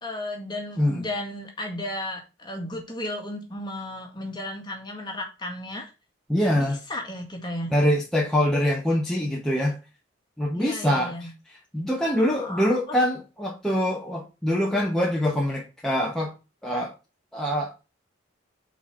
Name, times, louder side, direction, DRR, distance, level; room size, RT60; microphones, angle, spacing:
voice 1, 0.0-5.9 6.6-7.7 10.5-11.3 12.2-12.8, left 1 dB, 20° left, 1.7 m, -34 dB
voice 2, 6.3-6.8 7.7-9.8 10.4-11.3 11.7-16.3 16.6-16.9 17.3-17.9, equal, 5° left, 1.0 m, -24 dB
5.4 x 4.2 x 6.0 m
head